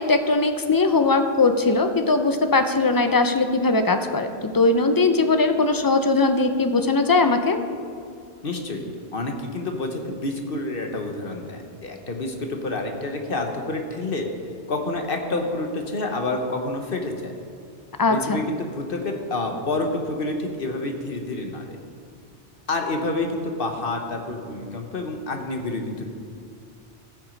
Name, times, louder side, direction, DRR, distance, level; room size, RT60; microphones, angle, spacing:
voice 1, 0.0-7.6 18.0-18.4, left 3 dB, 30° left, 8 dB, 0.4 m, -20 dB
voice 2, 8.4-14.3 14.7-17.3 18.1-21.8 22.7-26.0, left 2 dB, 55° left, 3 dB, 1.1 m, -28 dB
15.0 x 6.0 x 5.2 m, 2.3 s
omnidirectional pair, 1.2 m